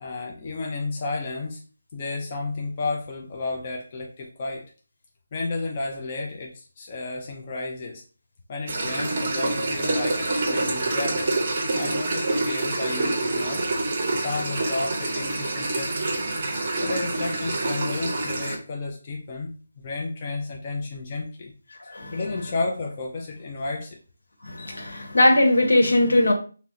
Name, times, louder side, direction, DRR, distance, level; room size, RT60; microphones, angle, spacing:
voice 1, 0.0-1.6 1.9-4.6 5.3-8.0 8.5-11.3 11.8-13.6 14.1-16.2 16.8-21.5 21.8-24.0, left 3 dB, 20° left, -1 dB, 0.4 m, -32 dB
sound 1, 8.7-18.6, right 2 dB, 25° right, 0.6 m, -26 dB
voice 2, 21.8-22.2 24.4-26.3, left 1 dB, 75° left, 3 dB, 1.0 m, -20 dB
2.8 x 2.0 x 3.6 m, 0.39 s
figure-of-eight pair, 175°, 0 cm